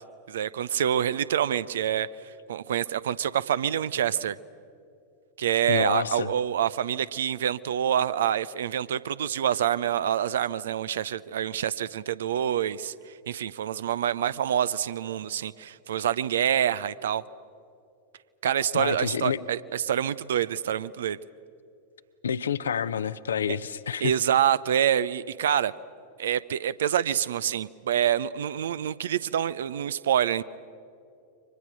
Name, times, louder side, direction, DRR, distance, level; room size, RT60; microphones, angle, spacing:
voice 1, 0.3-2.1 2.5-4.4 5.4-17.2 18.4-21.2 23.5-23.6 24.0-25.7 26.2-30.4, right 10 dB, 60° right, 18 dB, 0.6 m, -26 dB
voice 2, 5.7-6.3 18.7-19.4 22.2-24.2, left 8 dB, 70° left, 13 dB, 0.8 m, -28 dB
30.0 x 25.0 x 6.2 m, 2.6 s
figure-of-eight pair, 90°, 0 cm